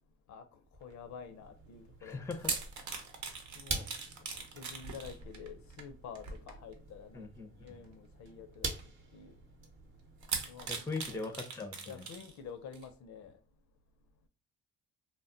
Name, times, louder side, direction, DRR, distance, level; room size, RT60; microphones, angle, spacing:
sound 1, 0.7-11.2, right 4 dB, 40° right, 0.7 m, -46 dB
voice 1, 0.8-2.2 3.6-3.9 4.3-7.3 7.6-8.7 9.1-9.3 10.5-11.3 11.8-13.4, left 6 dB, 70° left, 0.6 m, -49 dB
voice 2, 2.0-2.6 7.1-7.8 10.7-12.0, left 3 dB, 10° left, 0.5 m, -40 dB
sound 2, 2.1-6.9 7.7-7.9 8.8-8.9 10.2-12.4 12.7-12.9, right 5 dB, 70° right, 0.7 m, -41 dB
2.2 x 2.0 x 3.7 m
cardioid pair, 90°, 30 cm